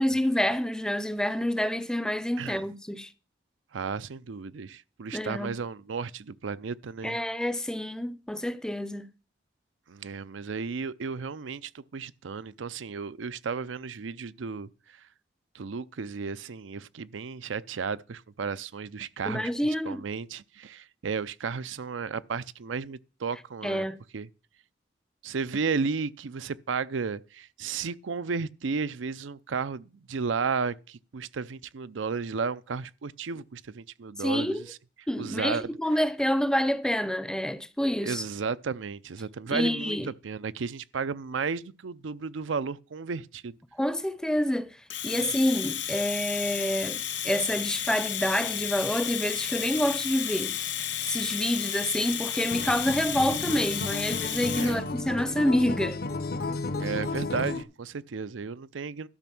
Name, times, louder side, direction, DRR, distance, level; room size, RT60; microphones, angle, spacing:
voice 1, 0.0-3.1 5.1-5.5 7.0-9.1 19.3-20.0 23.6-24.0 34.2-34.6 35.1-38.3 39.5-40.1 43.7-44.7 45.0-47.0 47.2-50.5 51.0-56.0, equal, 5° left, 0.5 m, -27 dB
voice 2, 3.7-7.2 9.9-14.7 15.5-19.5 19.9-23.9 24.1-24.3 25.2-34.8 35.2-35.7 38.0-43.5 54.5-54.8 56.7-59.1, right 5 dB, 90° right, 0.5 m, -33 dB
Domestic sounds home sounds, 44.9-54.8, left 10 dB, 80° left, 2.4 m, -32 dB
Acoustic guitar, 52.5-57.6, left 3 dB, 50° left, 0.7 m, -33 dB
12.5 x 6.2 x 6.0 m
head